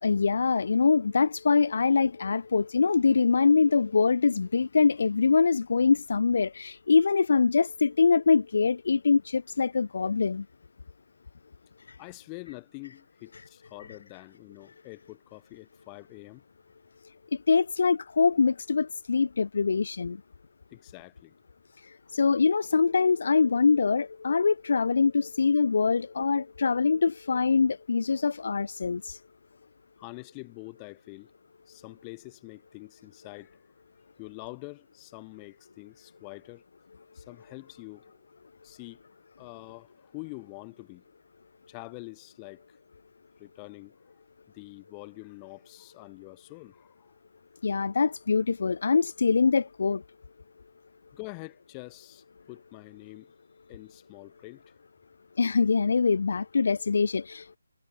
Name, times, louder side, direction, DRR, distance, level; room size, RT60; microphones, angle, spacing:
voice 1, 0.0-10.4 17.5-20.2 22.1-29.2 47.6-50.0 55.4-57.6, left 5 dB, 45° left, 1.2 m, -24 dB
voice 2, 12.0-16.4 20.7-21.3 30.0-31.3 31.7-33.6 34.2-36.6 37.1-38.2 38.6-39.0 39.4-41.0 41.7-42.8 43.4-44.0 44.5-47.1 51.1-53.3 53.7-54.6, left 39 dB, 10° left, 2.1 m, -45 dB
hypercardioid pair, 175°, 0 cm